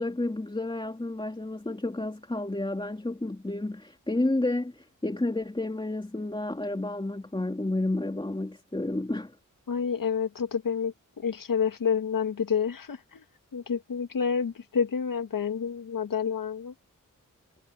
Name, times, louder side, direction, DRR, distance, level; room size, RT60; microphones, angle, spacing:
voice 1, 0.0-9.3, left 2 dB, 15° left, 2.9 m, -31 dB
voice 2, 9.7-13.2 13.5-16.7, left 6 dB, 85° left, 1.8 m, -29 dB
wide cardioid pair, 110°, 32 cm